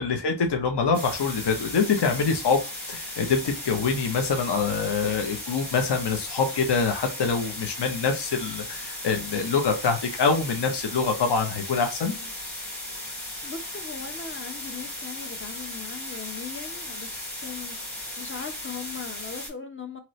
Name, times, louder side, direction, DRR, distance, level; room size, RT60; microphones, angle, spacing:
voice 1, 0.0-2.6 2.9-12.1, left 5 dB, 60° left, 0.8 m, -25 dB
sound 1, 0.9-19.5, left 1 dB, 90° left, 1.8 m, -36 dB
voice 2, 13.4-17.1 17.4-17.8 18.2-20.0, left 6 dB, 25° left, 0.8 m, -39 dB
3.0 x 2.5 x 3.1 m
cardioid pair, 40°, 47 cm